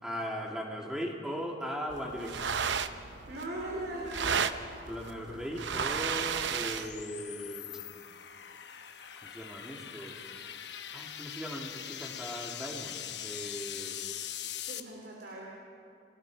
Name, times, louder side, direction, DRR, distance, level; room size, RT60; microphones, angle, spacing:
voice 1, 0.0-2.6 4.8-7.9 9.2-10.2 10.9-14.0, equal, 5° right, -1 dB, 2.4 m, -39 dB
sound 1, 1.9-7.0, right 6 dB, 85° right, 0.7 m, -34 dB
voice 2, 3.3-4.4 14.6-15.5, right 1 dB, 60° right, -2 dB, 3.0 m, -39 dB
sound 2, 3.4-14.8, left 10 dB, 75° left, 1.0 m, -43 dB
29.5 x 18.5 x 4.8 m, 2.4 s
head